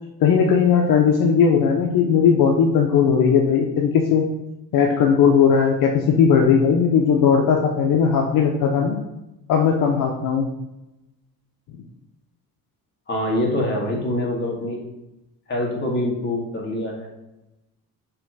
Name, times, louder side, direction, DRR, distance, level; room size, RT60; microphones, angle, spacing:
voice 1, 0.2-4.3 4.7-9.0 9.5-10.5, left 6 dB, 65° left, 2 dB, 0.8 m, -18 dB
voice 2, 13.1-14.8 15.5-17.1, left 1 dB, 30° left, -2 dB, 1.8 m, -25 dB
5.6 x 3.2 x 5.4 m, 0.94 s
cardioid pair, 140°, 36 cm